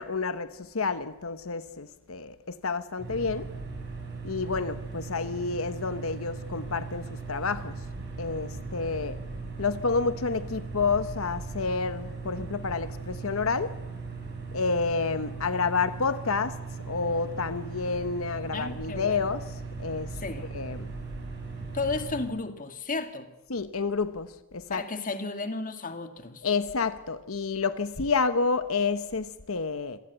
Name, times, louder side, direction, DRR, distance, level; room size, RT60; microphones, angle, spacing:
voice 1, 0.0-3.5 4.2-7.8 8.2-9.2 9.6-13.7 14.5-16.6 16.9-19.5 19.8-20.1 20.4-20.9 23.5-24.8 26.4-30.0, left 4 dB, 90° left, 12 dB, 1.0 m, -29 dB
sound 1, 3.0-22.3, right 4 dB, 55° right, 6.7 m, -38 dB
voice 2, 18.5-19.3 20.2-20.5 21.7-23.3 24.7-26.5, left 3 dB, 40° left, 8 dB, 2.0 m, -33 dB
26.5 x 17.5 x 8.1 m, 0.97 s
head